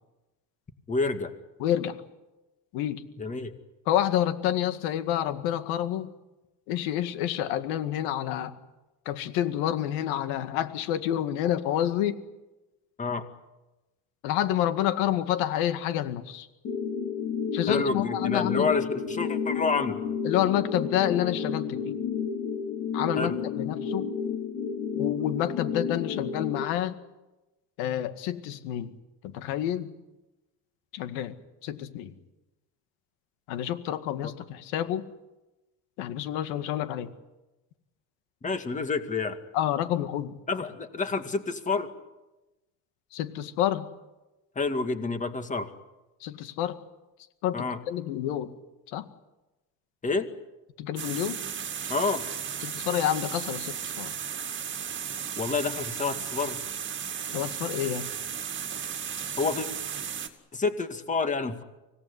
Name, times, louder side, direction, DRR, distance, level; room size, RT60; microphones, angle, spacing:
voice 1, 0.9-1.3 3.2-3.5 13.0-13.2 17.7-20.0 23.2-23.4 34.2-34.3 38.4-39.4 40.5-41.9 44.6-45.7 47.5-47.8 50.0-50.3 51.9-52.2 55.4-56.6 59.4-59.7 60.5-61.6, left 4 dB, 20° left, 8 dB, 2.1 m, -28 dB
voice 2, 1.6-1.9 2.7-3.0 3.9-6.1 6.7-8.5 9.1-12.1 14.2-16.5 17.5-18.7 20.2-22.0 22.9-23.3 23.6-24.0 25.0-27.0 27.8-28.9 29.2-29.9 30.9-31.3 31.6-32.1 33.5-35.0 36.0-37.1 39.5-40.3 43.1-43.9 46.2-46.8 47.4-48.5 48.9-49.0 50.8-51.4 52.6-54.1 57.3-58.1, left 11 dB, 85° left, 10 dB, 2.0 m, -28 dB
sound 1, 16.6-26.6, left 6 dB, 45° left, 4.4 m, -31 dB
sound 2, 51.0-60.3, right 8 dB, 30° right, 2.3 m, -35 dB
25.5 x 18.0 x 9.8 m, 1.1 s
cardioid pair, 135°, 37 cm